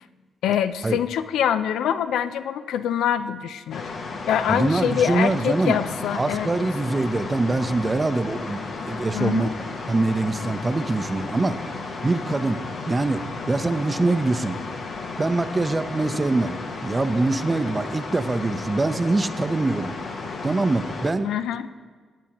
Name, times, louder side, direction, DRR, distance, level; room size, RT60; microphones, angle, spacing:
voice 1, 0.4-3.9 4.3-6.5 9.1-9.5 21.2-21.7, left 9 dB, 85° left, 12 dB, 0.4 m, -24 dB
sound 1, 3.7-21.1, left 4 dB, 65° left, 1.2 m, -34 dB
voice 2, 4.5-5.8 6.1-9.5 9.9-11.6 12.0-12.6 12.9-14.6 15.2-16.6 16.8-20.0 20.4-21.3, right 2 dB, 25° right, 11 dB, 0.6 m, -24 dB
16.5 x 8.2 x 3.0 m, 1.5 s
cardioid pair, 65°, 0 cm